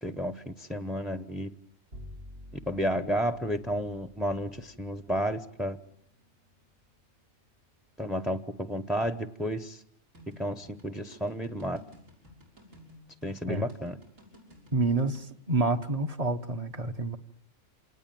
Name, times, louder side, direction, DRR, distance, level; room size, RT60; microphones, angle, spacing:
voice 1, 0.0-1.5 2.7-5.8 8.0-9.8 10.4-11.8 13.2-14.0, equal, ahead, 0.7 m, -32 dB
Bowed string instrument, 1.9-8.4, left 1 dB, 50° right, 2.2 m, -52 dB
sound 1, 10.1-15.3, left 1 dB, 80° right, 7.3 m, -54 dB
voice 2, 14.7-17.2, right 3 dB, 30° right, 1.3 m, -28 dB
27.5 x 19.5 x 9.2 m
omnidirectional pair, 1.3 m